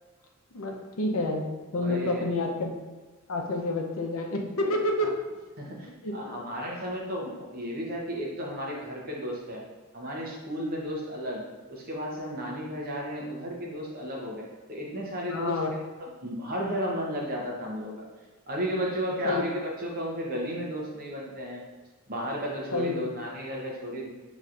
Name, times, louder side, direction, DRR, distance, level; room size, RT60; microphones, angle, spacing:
voice 1, 0.5-1.4 1.7-2.7 3.3-5.1 6.0-6.3 15.3-15.7 19.2-19.4 22.7-23.0, left 2 dB, 80° left, 2 dB, 0.6 m, -29 dB
voice 2, 1.8-2.2 4.6-4.7 5.0-5.1 5.6-9.6 9.9-15.6 16.0-18.1 18.5-21.7 22.1-24.1, equal, 45° right, -2 dB, 0.8 m, -33 dB
5.5 x 3.1 x 2.5 m, 1.3 s
head